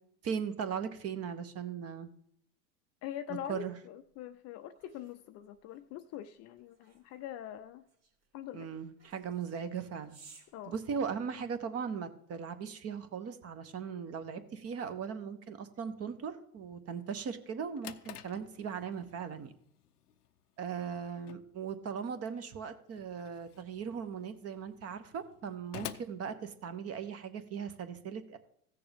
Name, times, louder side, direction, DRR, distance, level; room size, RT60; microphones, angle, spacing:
voice 1, 0.2-2.1 3.3-3.8 8.5-10.2 10.7-19.5 20.6-28.4, right 6 dB, 30° right, 11 dB, 1.0 m, -38 dB
voice 2, 3.0-7.8 8.3-8.7 10.5-10.8, left 11 dB, 35° left, 11 dB, 0.5 m, -43 dB
sound 1, 4.1-11.6, right 4 dB, 60° right, 2.8 m, -62 dB
Drawer open or close, 17.4-27.2, left 11 dB, 90° left, 0.6 m, -51 dB
15.5 x 6.8 x 3.4 m, 0.69 s
hypercardioid pair, 90°, 45 cm